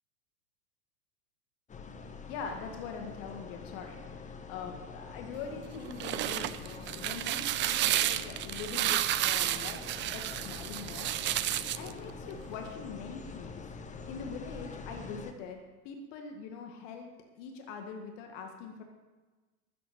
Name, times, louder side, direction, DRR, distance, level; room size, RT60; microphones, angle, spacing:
sound 1, 1.7-15.3, left 5 dB, 15° left, 1.2 m, -45 dB
voice 1, 2.3-11.1 11.8-13.6 14.1-17.1 17.4-18.8, left 5 dB, 50° left, 3 dB, 2.0 m, -43 dB
sound 2, 5.8-11.9, right 13 dB, 25° right, 0.5 m, -31 dB
13.0 x 8.4 x 8.6 m, 1.3 s
hypercardioid pair, 100°, 48 cm